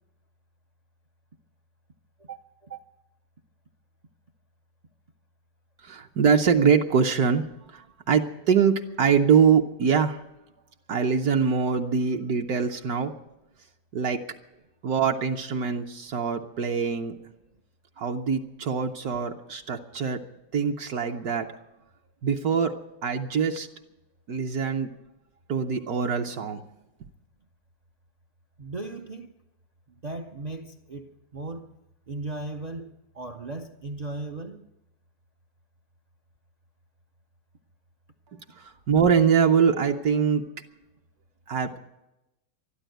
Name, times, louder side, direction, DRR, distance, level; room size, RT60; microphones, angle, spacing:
voice 1, 2.2-2.8 28.6-29.3 29.9-31.7 32.1-34.7, right 2 dB, 85° right, 0.3 m, -37 dB
voice 2, 5.8-10.2 10.9-13.1 13.9-14.2 14.8-17.2 18.0-20.2 20.5-21.5 22.2-22.7 23.0-23.7 24.3-24.9 25.5-26.6 38.6-40.4 41.5-41.8, right 6 dB, 70° right, 1.2 m, -23 dB
12.5 x 11.5 x 9.1 m
omnidirectional pair, 1.8 m